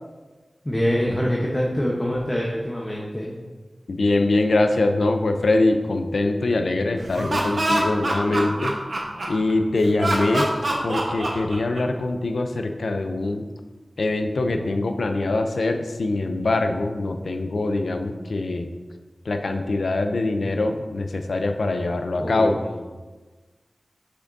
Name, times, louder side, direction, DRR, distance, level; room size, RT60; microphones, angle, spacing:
voice 1, 0.6-3.4 22.2-22.8, equal, 25° left, -3 dB, 0.9 m, -25 dB
voice 2, 3.9-8.7 9.3-10.5 10.8-13.4 14.0-18.7 19.3-22.5, left 2 dB, 85° left, 6 dB, 0.5 m, -23 dB
Laughter, 7.0-9.5 10.0-12.0, right 1 dB, 65° right, 1.0 m, -25 dB
6.3 x 5.9 x 2.6 m, 1.3 s
cardioid pair, 45°, 0 cm